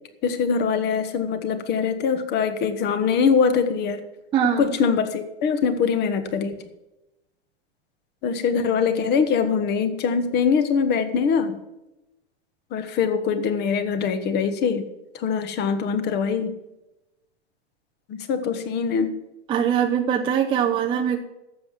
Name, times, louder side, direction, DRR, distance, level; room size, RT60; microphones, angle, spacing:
voice 1, 0.2-4.0 4.6-6.5 8.2-11.6 12.7-14.8 15.2-16.5 18.1-19.1, left 6 dB, 30° left, 10 dB, 1.3 m, -23 dB
voice 2, 4.3-4.7 19.5-21.2, right 8 dB, 15° right, 3 dB, 0.6 m, -22 dB
11.5 x 7.7 x 7.3 m, 0.96 s
hypercardioid pair, 140°, 35 cm